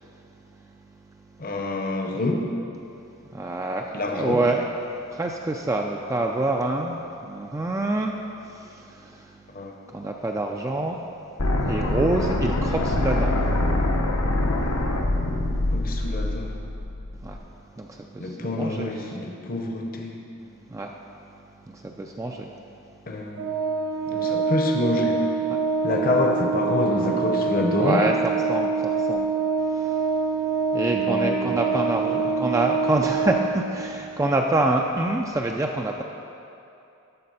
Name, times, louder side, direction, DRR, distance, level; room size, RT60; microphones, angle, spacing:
voice 1, 1.4-2.4 3.9-4.4 9.5-9.7 15.7-16.5 18.2-20.2 23.1-23.5 24.1-25.2 25.8-28.0 30.9-31.6 32.0-32.5, left 2 dB, 40° left, 2 dB, 0.8 m, -27 dB
voice 2, 3.3-4.7 5.1-8.2 8.4-9.4 9.9-11.0 11.7-13.4 17.2-17.4 17.8-19.2 20.7-20.9 21.7-22.5 25.5-25.6 27.8-29.3 29.6-30.1 30.7-36.0, right 2 dB, 15° right, 1 dB, 0.3 m, -27 dB
sound 1, 11.4-17.4, left 1 dB, 75° left, 0.8 m, -24 dB
Organ, 23.3-34.1, right 4 dB, 60° right, 0.6 m, -25 dB
12.5 x 4.2 x 5.5 m, 2.7 s
head